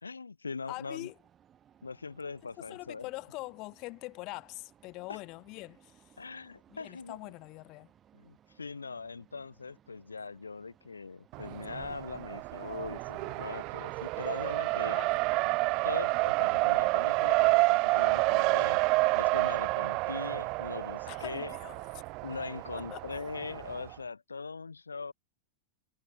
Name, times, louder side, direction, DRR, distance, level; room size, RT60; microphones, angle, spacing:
voice 1, 0.0-1.1 1.8-3.0 5.1-5.2 6.2-7.2 8.1-15.0 15.8-18.8 19.1-21.5 22.2-25.1, left 4 dB, 75° left, 1.7 m, -41 dB
voice 2, 0.7-1.2 2.6-6.1 6.7-7.9 14.9-15.2 21.1-21.9 22.7-23.0, left 23 dB, 40° left, 4.0 m, -43 dB
sound 1, 0.9-18.0, right 9 dB, 25° right, 5.7 m, -64 dB
Race car auto racing, 11.3-24.0, right 25 dB, 40° right, 0.3 m, -29 dB
figure-of-eight pair, 90°, 0 cm